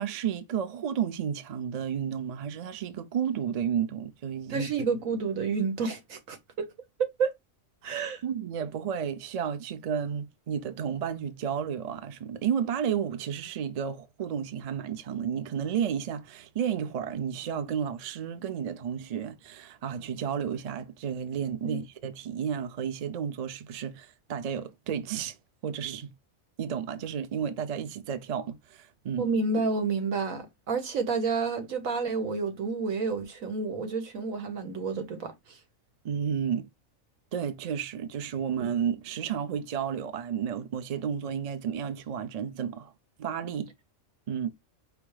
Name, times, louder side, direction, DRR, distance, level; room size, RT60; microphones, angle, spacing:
voice 1, 0.0-4.7 7.8-25.4 25.6-26.1 26.6-29.3 36.0-36.7 37.3-42.9 43.2-43.7 44.3-44.5, right 8 dB, 55° right, 0.4 m, -32 dB
voice 2, 4.5-6.7 7.2-7.3 7.8-8.2 21.6-21.8 29.2-35.6, right 4 dB, 90° right, 1.5 m, -30 dB
5.0 x 2.0 x 4.7 m
omnidirectional pair, 1.4 m